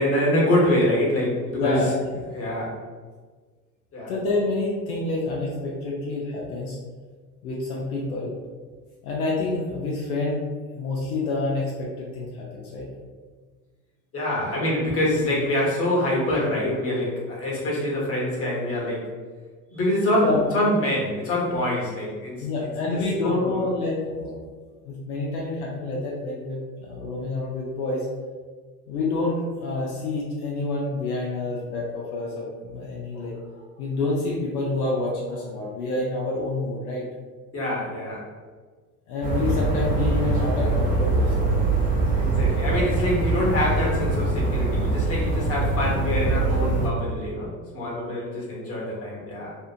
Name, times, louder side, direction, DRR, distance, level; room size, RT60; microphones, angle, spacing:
voice 1, 0.0-1.9 2.3-2.8 3.9-4.1 14.1-19.1 19.7-22.4 22.9-23.6 37.5-38.3 42.0-49.5, left 1 dB, 30° left, -4 dB, 1.0 m, -25 dB
voice 2, 1.5-2.1 4.1-6.8 7.4-8.3 9.0-10.4 10.8-12.9 20.2-20.4 22.4-24.4 24.8-28.1 28.9-37.0 37.9-38.0 39.1-41.6 48.1-48.2 48.9-49.0, left 2 dB, 70° left, -3 dB, 0.6 m, -28 dB
sound 1, 39.2-46.9, right 2 dB, 20° right, 0.7 m, -23 dB
2.7 x 2.4 x 2.4 m, 1.5 s
figure-of-eight pair, 70°, 45 cm